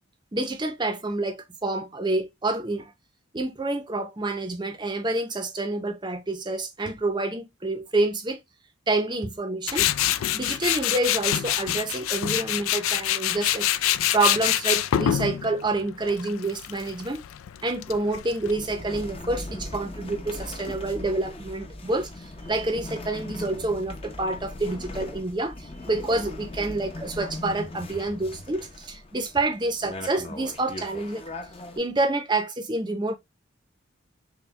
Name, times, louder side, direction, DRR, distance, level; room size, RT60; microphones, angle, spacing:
voice 1, 0.3-2.9 3.3-8.4 8.9-9.9 10.3-13.7 14.1-17.2 17.6-31.2 31.8-33.2, right 2 dB, 20° right, 0.6 m, -28 dB
Tools, 9.7-18.5, left 12 dB, 85° left, 0.3 m, -26 dB
sound 1, 18.5-31.8, left 2 dB, 30° left, 0.6 m, -39 dB
6.1 x 2.2 x 3.1 m
head